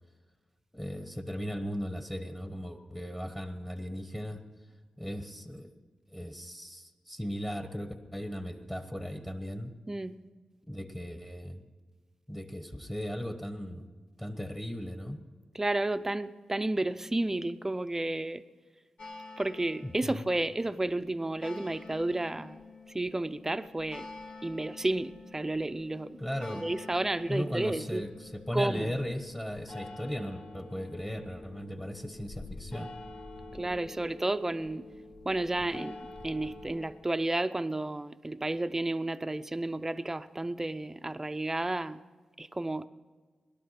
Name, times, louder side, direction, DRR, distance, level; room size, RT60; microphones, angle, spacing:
voice 1, 0.7-4.4 5.0-5.7 6.1-9.7 10.7-11.6 12.3-13.9 14.2-15.2 19.8-20.2 26.2-26.7 27.3-32.9, equal, 10° left, 7 dB, 1.3 m, -37 dB
voice 2, 15.5-18.4 19.4-22.6 22.9-24.1 24.4-26.2 26.6-28.1 28.5-28.9 33.5-34.9 35.2-36.0 36.2-42.0 42.4-42.9, right 2 dB, 20° right, 12 dB, 0.6 m, -32 dB
sound 1, 19.0-36.9, left 3 dB, 70° left, 2.1 m, -48 dB
18.0 x 12.0 x 5.8 m, 1.5 s
cardioid pair, 70°, 2 cm